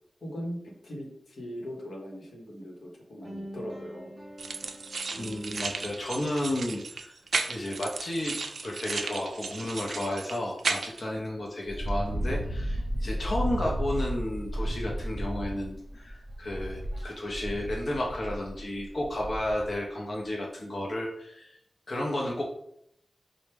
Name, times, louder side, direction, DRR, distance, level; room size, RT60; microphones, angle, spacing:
voice 1, 0.2-4.1, equal, 80° left, -1 dB, 0.9 m, -40 dB
sound 1, 3.2-6.6, equal, 5° left, 0.6 m, -44 dB
sound 2, 4.4-11.0, right 4 dB, 80° right, 0.3 m, -34 dB
voice 2, 5.2-7.2 7.5-8.4 8.6-21.6 21.9-22.4, left 1 dB, 50° left, -2 dB, 0.5 m, -32 dB
Wind, 11.6-19.8, equal, 45° right, 0.7 m, -33 dB
4.4 x 2.0 x 3.3 m, 0.75 s
wide cardioid pair, 120°, 0 cm